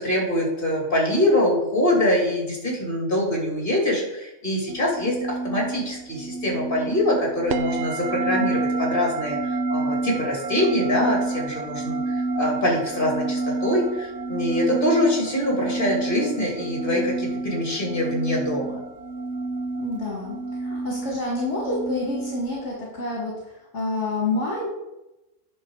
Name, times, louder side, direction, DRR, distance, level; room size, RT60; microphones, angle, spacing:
voice 1, 0.0-18.8, left 1 dB, 45° left, -2 dB, 2.9 m, -24 dB
sound 1, 4.7-22.7, right 3 dB, 65° right, 0.9 m, -29 dB
voice 2, 19.8-23.3 23.7-24.7, left 2 dB, 65° left, -3 dB, 2.1 m, -28 dB
9.6 x 6.1 x 4.8 m, 0.94 s
omnidirectional pair, 1.3 m